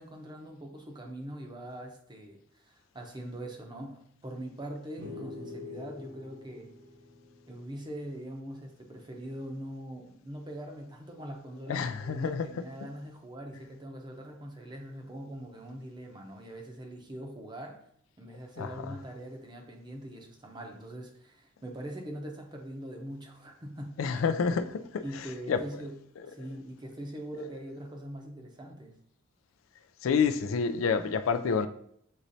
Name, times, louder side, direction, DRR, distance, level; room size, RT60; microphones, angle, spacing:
voice 1, 0.0-6.7 7.5-17.8 18.2-24.2 25.0-26.0 26.2-29.0, right 1 dB, 20° right, 0.6 m, -42 dB
sound 1, 5.0-8.5, left 3 dB, 55° right, 0.8 m, -45 dB
voice 2, 11.7-12.5 18.6-19.0 24.0-25.8 26.2-26.5 30.0-31.7, left 5 dB, 85° left, 0.4 m, -29 dB
6.3 x 3.0 x 2.7 m
head